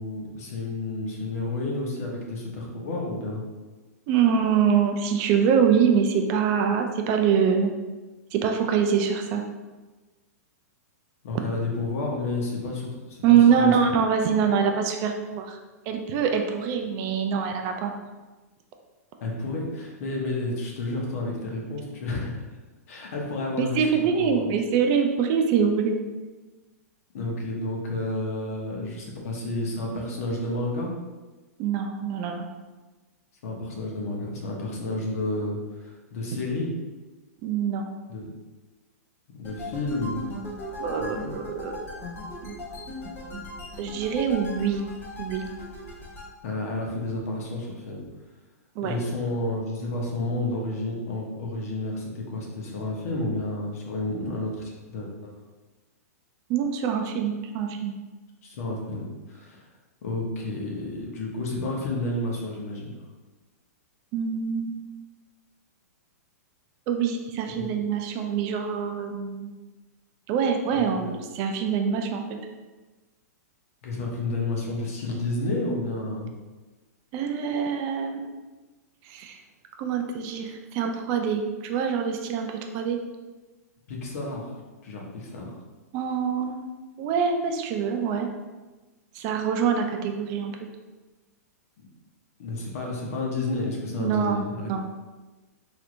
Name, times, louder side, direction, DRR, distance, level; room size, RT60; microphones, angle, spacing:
voice 1, 0.0-3.4 11.2-13.7 19.2-22.4 22.9-24.4 27.1-30.9 33.4-36.7 38.1-38.3 39.4-40.2 41.0-41.3 46.4-48.0 48.8-55.3 58.4-59.7 60.0-62.9 67.5-67.7 70.7-71.2 73.8-76.3 83.9-84.5 84.8-85.6 91.8-91.9 92.4-94.8, left 2 dB, 60° left, -1 dB, 0.9 m, -31 dB
voice 2, 4.1-7.7 8.3-9.4 13.2-15.6 15.9-17.9 23.8-26.0 31.6-32.5 37.4-37.9 40.8-41.7 42.4-42.6 43.3-43.4 43.8-44.8 45.2-45.5 48.8-48.9 56.5-57.9 64.1-64.8 66.9-69.6 70.3-72.2 77.1-78.3 79.1-79.4 79.8-83.0 85.9-86.6 87.0-88.3 89.1-90.5 94.0-94.8, right 7 dB, 35° right, 4 dB, 0.3 m, -24 dB
sound 1, 39.4-46.3, left 1 dB, 20° left, 0.7 m, -38 dB
3.2 x 2.8 x 2.5 m, 1.2 s
hypercardioid pair, 125°, 9 cm